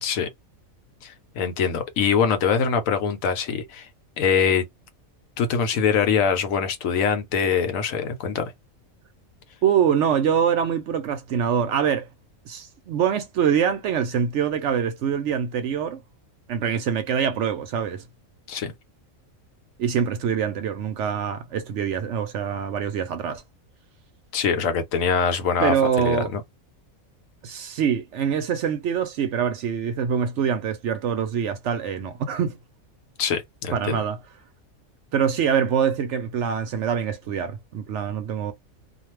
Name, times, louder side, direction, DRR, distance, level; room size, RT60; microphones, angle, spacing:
voice 1, 1.0-3.9 4.2-4.6 5.4-8.5 18.5-18.7 24.3-26.4 33.2-34.0, left 6 dB, 75° left, 1.0 m, -23 dB
voice 2, 9.6-12.1 12.5-16.0 16.5-18.0 19.8-23.4 25.6-26.3 27.4-32.6 33.7-34.2 35.1-38.5, right 8 dB, 65° right, 0.8 m, -24 dB
2.4 x 2.2 x 3.1 m
omnidirectional pair, 1.5 m